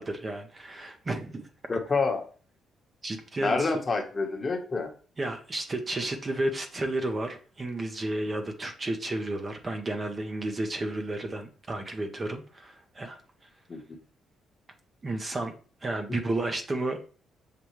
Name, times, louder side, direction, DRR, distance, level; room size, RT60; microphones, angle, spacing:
voice 1, 0.0-1.5 3.0-3.7 5.2-13.2 15.0-15.5 15.8-17.0, right 2 dB, 30° right, 5 dB, 0.8 m, -32 dB
voice 2, 1.7-2.2 3.4-4.9 13.7-13.8, left 4 dB, 35° left, 3 dB, 1.1 m, -27 dB
6.8 x 2.3 x 3.1 m, 0.38 s
cardioid pair, 90°, 0 cm